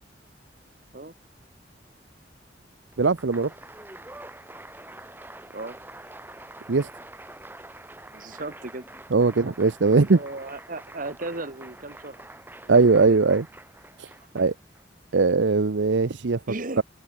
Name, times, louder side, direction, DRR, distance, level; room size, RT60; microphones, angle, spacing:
Applause, 2.9-14.8, right 1 dB, 10° right, 4.4 m, -46 dB
voice 1, 3.0-3.5 6.7-6.9 9.1-10.2 12.7-13.5 14.0-14.1 14.3-14.5 15.1-16.4 16.8-16.9, right 4 dB, 80° right, 0.7 m, -20 dB
voice 2, 8.1-8.8 10.1-12.3 12.6-13.2 14.2-14.3 16.5-16.8, right 2 dB, 45° right, 1.9 m, -36 dB
head